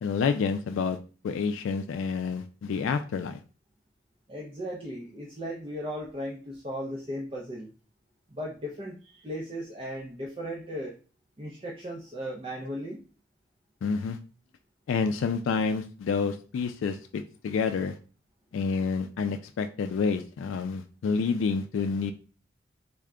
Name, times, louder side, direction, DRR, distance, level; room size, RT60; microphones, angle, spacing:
voice 1, 0.0-1.0 1.2-3.4 13.8-14.2 14.9-18.0 18.5-22.1, left 5 dB, 80° left, 7 dB, 0.3 m, -28 dB
voice 2, 4.3-7.7 8.3-10.9 11.4-13.0, equal, 25° right, -3 dB, 0.5 m, -36 dB
3.4 x 2.1 x 3.6 m, 0.36 s
head